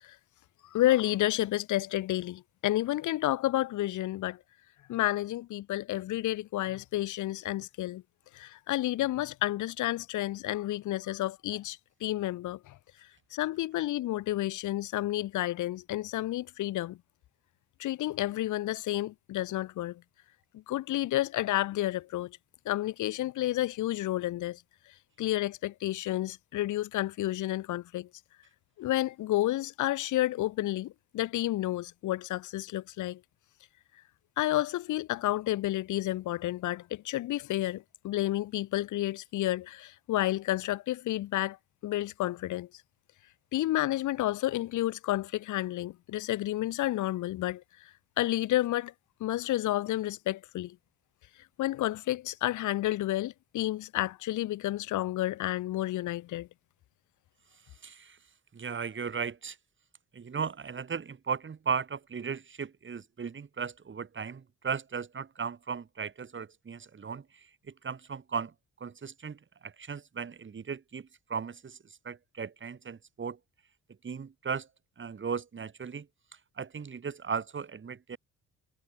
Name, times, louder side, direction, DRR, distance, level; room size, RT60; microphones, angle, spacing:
voice 1, 0.7-4.4 4.9-8.0 8.3-12.7 13.3-17.0 17.8-20.0 20.7-22.3 22.6-24.6 25.2-28.1 28.8-33.2 34.4-41.6 41.8-42.7 43.5-47.6 48.2-48.9 49.2-50.7 51.6-56.5, left 15 dB, 80° left, 1.2 m, -30 dB
voice 2, 57.8-58.2 58.5-59.6 60.1-68.5 68.8-73.4 74.0-74.7 75.0-76.1 76.6-78.2, right 6 dB, 40° right, 5.0 m, -36 dB
cardioid pair, 90°, 30 cm